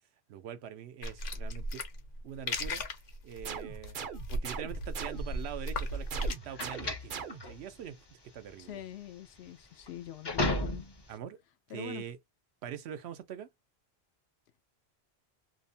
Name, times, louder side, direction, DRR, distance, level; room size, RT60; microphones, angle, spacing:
voice 1, 0.3-1.8 2.2-2.8 3.2-4.0 4.3-8.8 11.1-11.4 11.7-12.2 12.6-13.5, right 9 dB, 85° right, 0.9 m, -43 dB
sound 1, 1.0-6.3, left 1 dB, 60° left, 0.8 m, -36 dB
sound 2, 3.4-5.5 6.1-7.7, right 6 dB, 60° right, 0.7 m, -42 dB
sound 3, 5.2-11.2, left 2 dB, 35° left, 0.5 m, -36 dB
voice 2, 8.6-10.9 11.7-12.0, left 11 dB, 80° left, 0.8 m, -44 dB
2.7 x 2.0 x 2.6 m
omnidirectional pair, 1.1 m